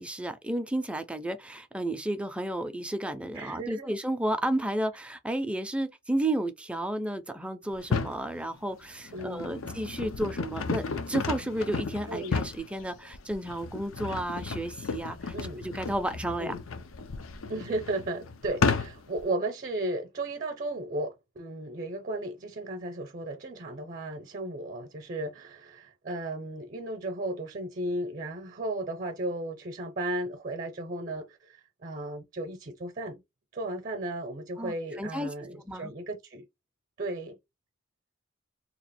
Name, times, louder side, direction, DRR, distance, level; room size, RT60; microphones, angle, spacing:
voice 1, 0.0-16.5 34.6-35.3 35.6-35.9, right 1 dB, 5° right, 0.5 m, -32 dB
voice 2, 3.3-3.9 9.1-9.6 12.1-12.4 15.3-15.7 16.4-16.6 17.5-33.2 33.5-36.4 37.0-37.4, right 1 dB, 40° right, 0.7 m, -35 dB
sound 1, 7.7-8.2 8.9-19.2, left 4 dB, 85° left, 0.6 m, -33 dB
2.9 x 2.4 x 4.2 m
head